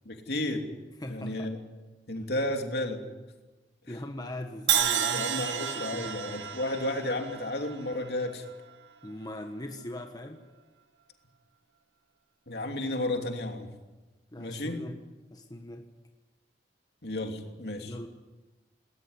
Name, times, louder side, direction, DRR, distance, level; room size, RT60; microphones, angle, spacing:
voice 1, 0.0-0.7 1.1-1.6 2.1-3.0 5.1-8.4 12.5-13.7 14.4-14.8 17.0-18.1, left 1 dB, 65° left, 4 dB, 3.0 m, -32 dB
voice 2, 1.0-1.5 2.2-2.3 3.9-6.2 9.0-10.4 14.3-15.0 15.3-15.9 17.8-18.1, left 1 dB, 20° left, 4 dB, 1.3 m, -40 dB
Crash cymbal, 4.7-8.7, right 9 dB, 85° right, 1.8 m, -31 dB
20.0 x 18.5 x 9.8 m, 1.2 s
head